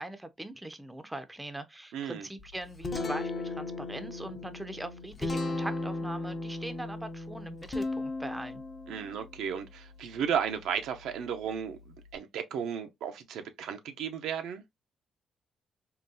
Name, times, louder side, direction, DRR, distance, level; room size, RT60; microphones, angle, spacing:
voice 1, 0.0-8.6, right 1 dB, 10° right, 0.5 m, -41 dB
voice 2, 1.9-2.3 8.9-14.6, right 8 dB, 85° right, 0.5 m, -34 dB
Guitar, 2.4-12.2, left 2 dB, 40° left, 0.7 m, -37 dB
3.7 x 2.3 x 2.6 m
cardioid pair, 90°, 0 cm